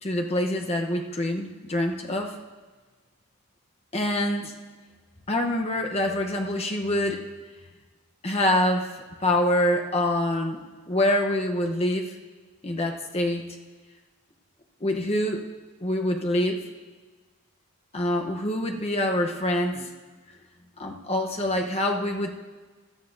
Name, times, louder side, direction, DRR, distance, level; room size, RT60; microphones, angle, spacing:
voice 1, 0.0-2.3 3.9-4.5 5.3-7.2 8.2-8.9 9.2-10.6 10.9-12.2 12.6-13.4 14.8-15.4 15.8-16.7 17.9-19.9 20.8-22.3, left 1 dB, 30° left, 2 dB, 0.9 m, -25 dB
16.5 x 11.5 x 2.7 m, 1.4 s
head